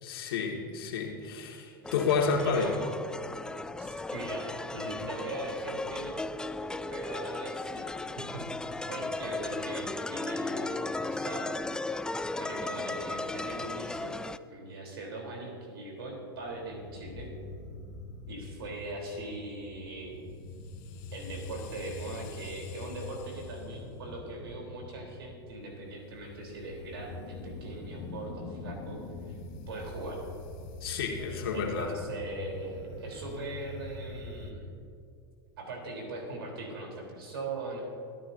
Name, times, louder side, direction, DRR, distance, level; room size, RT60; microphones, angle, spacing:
voice 1, 0.0-2.8 30.8-31.9, left 5 dB, 75° left, 1 dB, 2.2 m, -30 dB
sound 1, 1.8-14.4, left 2 dB, 5° left, 0.3 m, -36 dB
voice 2, 1.9-2.8 3.8-6.2 6.9-7.9 8.2-8.4 8.9-11.6 12.0-14.2 14.5-17.3 18.3-20.4 21.1-29.0 29.3-29.4 29.7-30.3 31.5-34.7 35.6-37.8, right 2 dB, 80° right, -1 dB, 3.9 m, -40 dB
sound 2, 16.4-34.5, left 3 dB, 60° left, 1.6 m, -44 dB
24.0 x 11.0 x 2.8 m, 2.5 s
hypercardioid pair, 100°, 12 cm